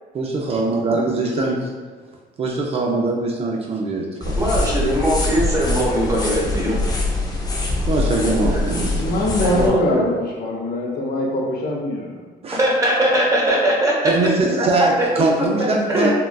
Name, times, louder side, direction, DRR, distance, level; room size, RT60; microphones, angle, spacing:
voice 1, 0.2-1.7 2.4-4.3 7.9-8.9 12.4-12.6 14.0-16.1, right 3 dB, 35° right, 0 dB, 0.4 m, -22 dB
sound 1, 4.2-9.7, left 2 dB, 20° left, 0.6 m, -23 dB
voice 2, 4.4-6.8 8.3-8.9 9.4-10.1 12.6-14.1 14.5-15.0 15.9-16.1, equal, 20° right, -4 dB, 0.8 m, -20 dB
voice 3, 9.0-12.2, left 1 dB, 65° left, -1 dB, 0.7 m, -23 dB
3.6 x 2.3 x 2.2 m, 1.4 s
cardioid pair, 110°, 17 cm